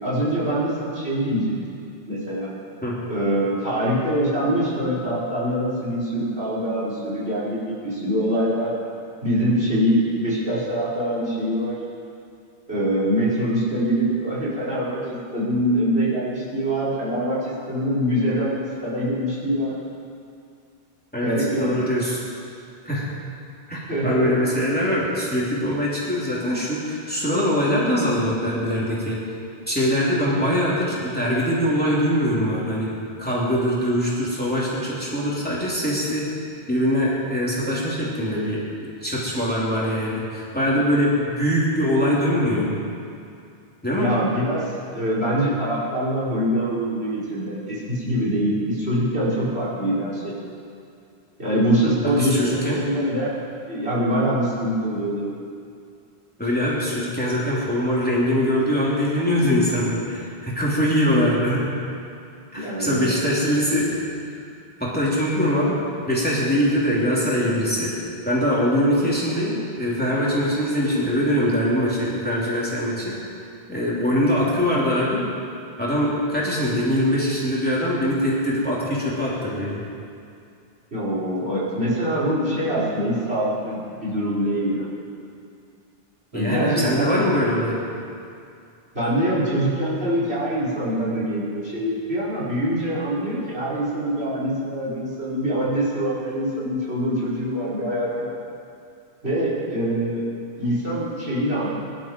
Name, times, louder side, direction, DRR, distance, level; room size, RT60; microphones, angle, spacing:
voice 1, 0.0-1.6 2.1-2.5 3.1-8.7 9.2-11.8 12.7-19.7 21.2-21.8 23.9-24.3 44.0-44.6 44.9-50.3 51.4-53.3 53.7-55.3 62.5-63.0 80.9-84.8 86.3-87.2 88.9-98.4 99.2-100.2 100.6-101.7, equal, 75° right, -7 dB, 5.0 m, -24 dB
voice 2, 21.1-22.2 22.8-23.1 23.7-29.2 29.7-32.9 33.2-36.2 36.7-38.6 39.0-42.7 43.8-44.1 52.0-52.8 56.4-61.6 62.5-63.9 64.8-65.8 66.1-67.9 68.2-73.2 73.7-75.3 75.8-79.8 86.3-87.8, equal, 10° left, -7 dB, 3.3 m, -22 dB
23.0 x 12.0 x 4.7 m, 2.4 s
omnidirectional pair, 1.1 m